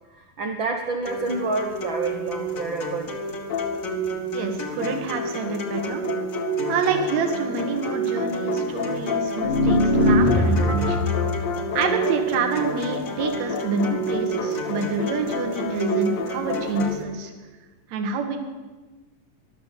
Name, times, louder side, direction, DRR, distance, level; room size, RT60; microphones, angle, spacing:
voice 1, 0.1-3.4, right 3 dB, 80° right, 3 dB, 1.1 m, -28 dB
sound 1, 1.0-17.0, right 3 dB, 40° left, 1.2 m, -30 dB
sound 2, 3.5-4.3 4.8-17.0, left 5 dB, 65° left, 1.7 m, -31 dB
voice 2, 4.3-6.0 6.7-11.1 11.7-17.3 17.9-18.4, right 4 dB, 60° right, 5 dB, 2.6 m, -27 dB
sound 3, 9.4-11.2, left 1 dB, 85° left, 0.5 m, -20 dB
14.0 x 12.0 x 8.3 m, 1.3 s
omnidirectional pair, 4.0 m